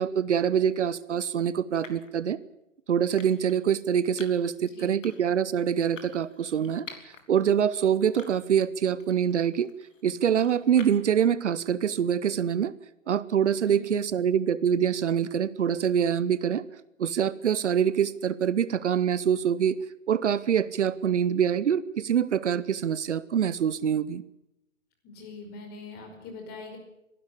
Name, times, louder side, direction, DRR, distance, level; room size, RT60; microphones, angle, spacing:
voice 1, 0.0-2.4 2.9-9.7 10.0-12.7 13.1-16.6 17.0-19.8 20.1-24.2, right 8 dB, 60° right, 17 dB, 0.9 m, -25 dB
sound 1, 0.5-0.8 1.8-2.2 3.2-3.6 4.2-4.5 5.0-5.4 6.0-7.2 7.7-7.8 8.2-8.7 9.0-11.2, left 4 dB, 70° left, 3.3 m, -48 dB
voice 2, 4.6-5.0 13.7-14.1 25.0-26.8, left 3 dB, 25° left, 4 dB, 5.2 m, -43 dB
22.0 x 12.5 x 9.9 m, 0.89 s
figure-of-eight pair, 130°, 39 cm